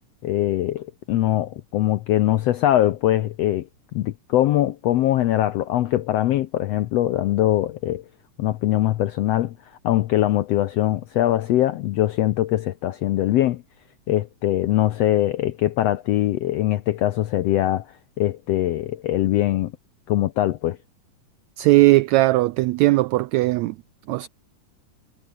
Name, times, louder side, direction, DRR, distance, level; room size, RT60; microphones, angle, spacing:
voice 1, 0.2-3.7 3.9-8.0 8.4-9.5 9.8-13.6 14.1-17.9 18.2-19.7 20.1-20.8, left 13 dB, 80° left, 1.5 m, -22 dB
voice 2, 21.6-23.7 24.1-24.3, right 18 dB, 85° right, 1.6 m, -18 dB
omnidirectional pair, 3.8 m